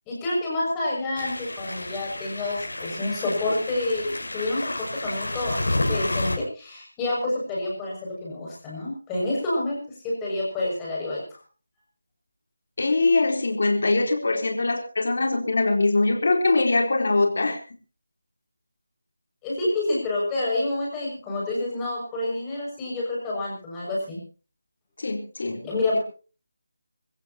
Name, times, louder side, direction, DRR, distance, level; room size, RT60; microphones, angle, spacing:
voice 1, 0.1-9.8 10.0-11.4 19.4-24.2 25.6-26.0, left 2 dB, 10° left, -5 dB, 6.7 m, -28 dB
sound 1, 1.1-6.4, left 2 dB, 85° left, 7.2 m, -30 dB
voice 2, 12.8-17.6 25.0-25.6, left 2 dB, 55° left, 2 dB, 3.8 m, -22 dB
25.5 x 15.0 x 2.9 m, 0.37 s
figure-of-eight pair, 170°, 0 cm